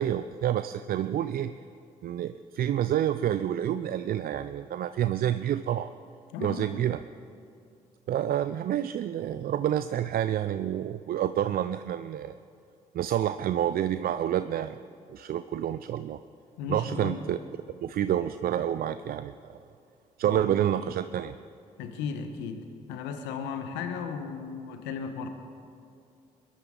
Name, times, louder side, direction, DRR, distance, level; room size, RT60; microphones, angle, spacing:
voice 1, 0.0-1.5 2.0-5.9 6.4-7.0 8.1-12.4 12.9-14.8 15.1-16.2 16.7-17.4 17.8-19.6 20.2-21.3, right 11 dB, 55° right, 12 dB, 0.4 m, -28 dB
voice 2, 6.3-6.8 16.6-17.2 20.2-20.4 21.8-25.3, left 6 dB, 80° left, 7 dB, 1.1 m, -35 dB
22.0 x 11.0 x 3.8 m, 2.5 s
hypercardioid pair, 45°, 18 cm